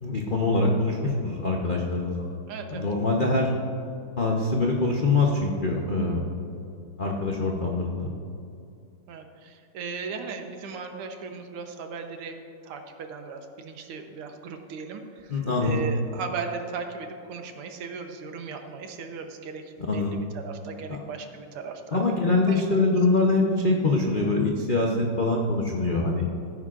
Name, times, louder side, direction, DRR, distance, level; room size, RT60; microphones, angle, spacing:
voice 1, 0.0-2.4 2.7-3.5 4.2-6.2 7.0-8.1 15.3-15.8 19.9-20.2 20.9-21.0 21.9-26.3, left 3 dB, 75° left, -1 dB, 0.4 m, -24 dB
voice 2, 2.5-2.9 9.1-12.4 12.6-19.6 19.9-22.0 22.5-22.6, right 5 dB, 85° right, 5 dB, 1.9 m, -37 dB
15.5 x 9.6 x 2.5 m, 2.5 s
omnidirectional pair, 2.4 m